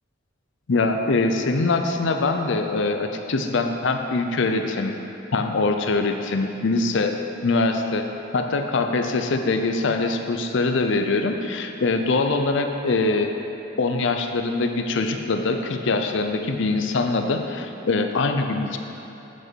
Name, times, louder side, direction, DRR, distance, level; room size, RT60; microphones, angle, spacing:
voice 1, 0.7-5.0 5.3-13.3 13.8-18.8, left 3 dB, 70° left, 5 dB, 0.6 m, -23 dB
8.1 x 6.3 x 4.6 m, 3.0 s
head